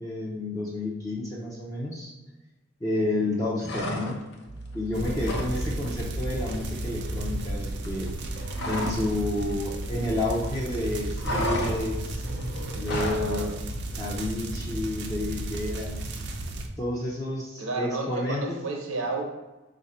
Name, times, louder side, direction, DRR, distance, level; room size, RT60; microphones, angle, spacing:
voice 1, 0.0-2.1 2.8-4.2 4.7-8.1 8.7-12.2 12.7-13.5 14.0-16.0 16.8-18.6, left 2 dB, 15° left, -6 dB, 0.6 m, -30 dB
voice 2, 3.0-3.3 13.2-13.5 17.6-19.2, right 3 dB, 90° right, 1 dB, 0.9 m, -32 dB
sound 1, 3.6-4.4 4.7-5.6 5.8-6.1 6.4-9.1 9.4-10.5 10.7-13.3, left 1 dB, 60° left, 0.7 m, -32 dB
sound 2, 4.5-12.6, right 2 dB, 85° left, 1.0 m, -39 dB
sound 3, 4.9-16.7, right 1 dB, 55° right, 0.5 m, -34 dB
4.3 x 2.6 x 4.2 m, 1.1 s
head